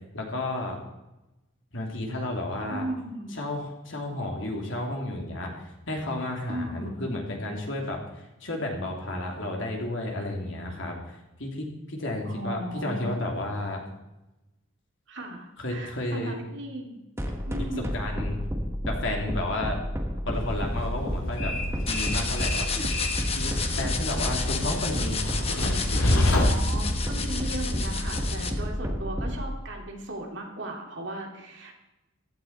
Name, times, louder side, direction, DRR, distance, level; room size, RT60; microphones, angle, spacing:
voice 1, 0.1-0.8 1.7-2.8 3.4-13.8 15.6-16.3 17.5-18.4 18.9-19.8 20.2-21.5 21.9-23.0 23.4-25.2, left 1 dB, 65° left, 0 dB, 3.2 m, -32 dB
voice 2, 2.7-3.4 6.5-7.0 12.2-13.1 15.1-17.0 17.4-17.9 26.1-31.8, right 1 dB, 55° right, 1 dB, 2.7 m, -36 dB
sound 1, 17.2-29.4, equal, 15° right, 1.5 m, -30 dB
Train, 20.3-28.7, left 1 dB, 85° left, 2.7 m, -29 dB
sound 2, 21.9-28.5, left 5 dB, 30° left, 1.2 m, -32 dB
15.5 x 12.5 x 4.4 m, 0.98 s
head